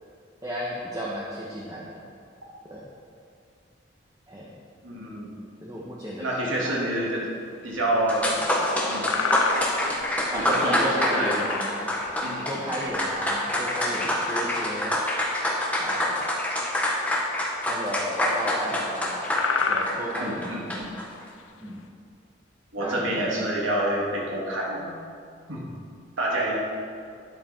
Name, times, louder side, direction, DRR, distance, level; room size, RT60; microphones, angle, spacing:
voice 1, 0.4-2.0 2.6-2.8 4.3-4.5 5.6-6.3 6.6-6.7 10.3-12.0 12.4-15.0 15.8-16.3 17.7-19.3 19.7-20.5 21.6-21.8 22.8-23.3, equal, 15° right, -5 dB, 1.3 m, -33 dB
voice 2, 4.8-5.3 6.2-8.5 8.8-9.1 10.3-11.5 12.2-12.6 20.2-20.9 22.7-25.0 25.5-25.7 26.2-26.7, right 1 dB, 85° right, -3 dB, 2.9 m, -28 dB
sound 1, 6.9-7.0 8.6-8.7 9.1-9.8 10.2-10.3 11.1-12.0 13.2-13.3 13.6-14.0 15.2-15.3 16.9-17.1 17.4-17.6 18.2-18.5 18.9-19.0 19.4-20.1 21.2-21.4, left 5 dB, 80° left, 0.9 m, -28 dB
sound 2, 7.8-7.9 8.1-21.1, left 1 dB, 5° left, 1.4 m, -26 dB
12.0 x 10.5 x 4.6 m, 2.3 s
head